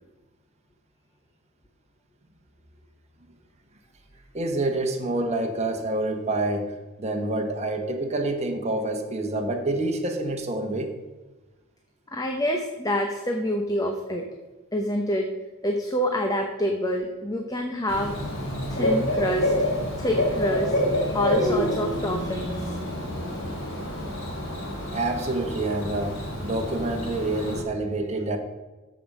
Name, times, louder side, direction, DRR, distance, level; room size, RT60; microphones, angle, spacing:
voice 1, 4.3-10.9 24.9-28.4, right 2 dB, 30° right, 3 dB, 1.3 m, -27 dB
voice 2, 12.1-14.3 14.7-15.3 15.6-18.2 18.7-19.5 20.0-20.8 21.1-22.8, equal, 15° left, 2 dB, 0.9 m, -27 dB
Bird / Cricket, 17.9-27.6, left 1 dB, 60° left, 3.3 m, -28 dB
13.5 x 5.2 x 5.5 m, 1.2 s
head